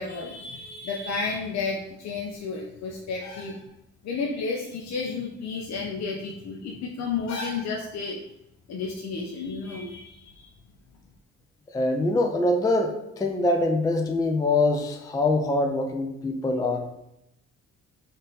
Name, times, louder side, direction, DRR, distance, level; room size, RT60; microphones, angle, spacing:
voice 1, 0.0-3.7 4.0-8.2 8.7-10.5, left 4 dB, 60° left, -1 dB, 0.6 m, -32 dB
voice 2, 11.7-16.9, left 2 dB, 10° left, 3 dB, 0.4 m, -24 dB
3.8 x 2.5 x 4.0 m, 0.84 s
cardioid pair, 90°, 30 cm